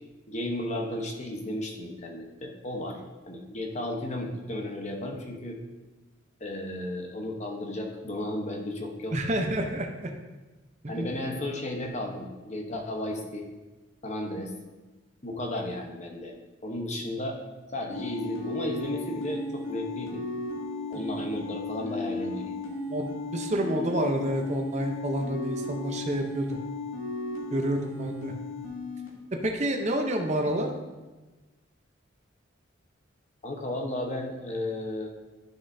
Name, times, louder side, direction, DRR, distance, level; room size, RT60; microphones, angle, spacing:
voice 1, 0.3-5.6 6.4-9.2 10.9-13.5 14.0-14.5 15.2-16.3 16.6-17.4 17.7-20.2 20.9-22.6 30.4-30.7 33.4-35.1, left 1 dB, 35° left, 2 dB, 1.0 m, -34 dB
voice 2, 9.1-10.1 10.8-11.2 22.9-26.6 27.5-28.3 29.4-30.7, right 1 dB, 35° right, 3 dB, 0.7 m, -29 dB
sound 1, 17.9-29.1, left 2 dB, 85° left, 2.2 m, -35 dB
11.5 x 6.5 x 2.7 m, 1.2 s
head